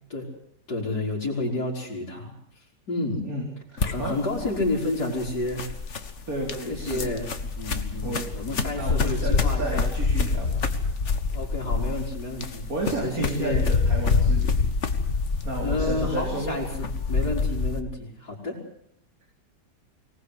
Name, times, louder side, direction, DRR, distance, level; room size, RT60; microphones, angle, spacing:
voice 1, 0.7-2.3 2.9-3.3 3.9-5.7 6.7-7.3 7.6-9.9 11.3-12.7 13.0-13.7 15.6-18.6, left 2 dB, 65° left, -5 dB, 5.4 m, -30 dB
voice 2, 3.2-4.2 6.3-7.1 8.0-8.3 8.7-10.6 12.7-14.7 15.4-16.6, right 2 dB, 55° right, 0 dB, 4.6 m, -32 dB
sound 1, 3.8-17.8, left 4 dB, 45° left, 1.7 m, -26 dB
24.5 x 19.0 x 8.1 m, 0.71 s
omnidirectional pair, 1.8 m